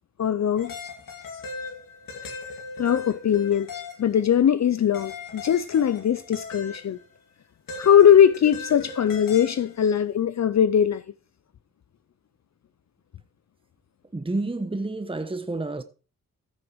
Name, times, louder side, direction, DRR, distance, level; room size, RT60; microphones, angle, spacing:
voice 1, 0.2-0.7 2.8-3.7 4.0-7.0 7.8-11.0, left 9 dB, 55° left, 0.6 m, -20 dB
sound 1, 0.6-4.5 4.9-7.0 7.7-9.8, left 4 dB, 90° left, 2.7 m, -38 dB
voice 2, 14.1-15.8, right 2 dB, 15° right, 1.1 m, -29 dB
14.5 x 6.1 x 4.7 m
cardioid pair, 65°, 32 cm